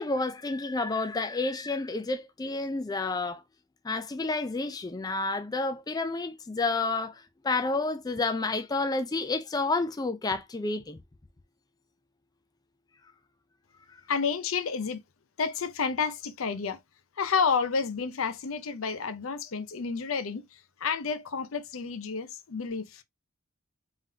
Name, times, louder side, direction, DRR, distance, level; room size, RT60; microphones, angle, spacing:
voice 1, 0.0-3.4 3.8-11.0, left 3 dB, 20° left, 0.4 m, -30 dB
voice 2, 14.1-15.0 15.4-16.8 17.2-23.0, left 5 dB, 70° left, 0.6 m, -30 dB
3.7 x 3.6 x 2.7 m
head